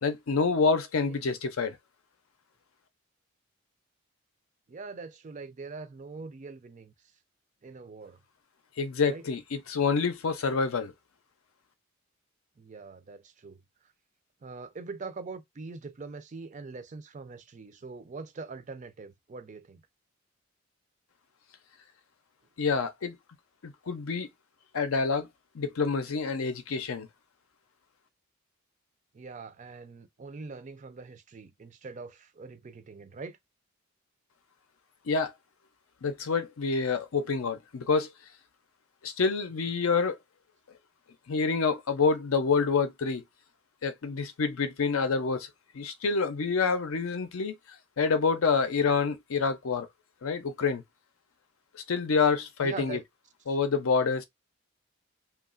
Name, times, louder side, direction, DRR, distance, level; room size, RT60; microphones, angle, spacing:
voice 1, 0.0-1.8 8.8-10.9 22.6-23.2 23.6-24.3 24.7-25.3 25.5-27.1 35.1-35.3 36.0-38.1 39.0-40.2 41.3-43.2 43.8-45.5 45.7-47.6 48.0-49.9 50.2-50.8 51.7-53.0 53.5-54.2, left 5 dB, 75° left, 0.5 m, -27 dB
voice 2, 4.7-6.9 7.6-8.2 9.1-9.2 12.6-13.6 14.4-19.8 29.1-33.4 52.6-53.0 53.5-53.6, right 4 dB, 35° right, 0.4 m, -43 dB
3.0 x 2.3 x 2.4 m
head